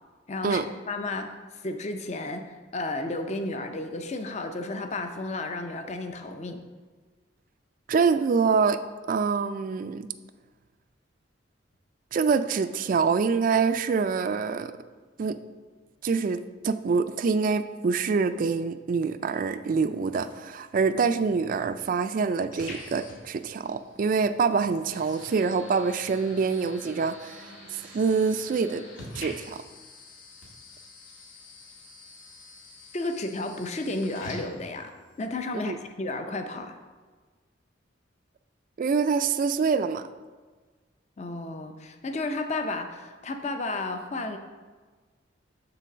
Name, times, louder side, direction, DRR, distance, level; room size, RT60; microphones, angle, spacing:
voice 1, 0.3-1.3 1.6-6.6 32.9-36.8 41.2-44.4, left 2 dB, 35° left, 7 dB, 0.5 m, -32 dB
voice 2, 7.9-8.8 9.1-10.1 12.1-14.7 15.2-15.4 16.0-16.4 16.6-28.8 29.2-29.6 35.7-35.8 38.8-40.0, right 5 dB, 45° right, 11 dB, 0.3 m, -25 dB
sound 1, 21.2-35.2, left 1 dB, 85° left, 2.0 m, -46 dB
6.8 x 3.9 x 6.0 m, 1.4 s
head